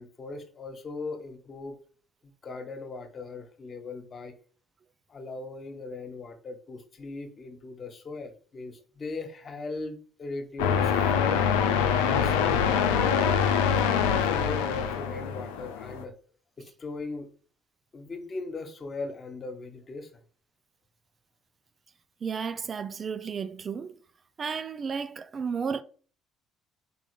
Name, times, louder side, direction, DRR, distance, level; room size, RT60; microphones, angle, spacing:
voice 1, 0.0-1.8 2.2-4.3 5.1-11.5 12.0-13.4 14.3-16.1 16.6-17.3 17.9-20.1, left 3 dB, 45° left, 1.4 m, -38 dB
sound 1, 10.6-16.0, left 7 dB, 90° left, 0.6 m, -24 dB
voice 2, 22.2-24.0 24.4-25.8, right 6 dB, 45° right, 0.5 m, -33 dB
5.1 x 3.8 x 5.1 m
hypercardioid pair, 60°, 0 cm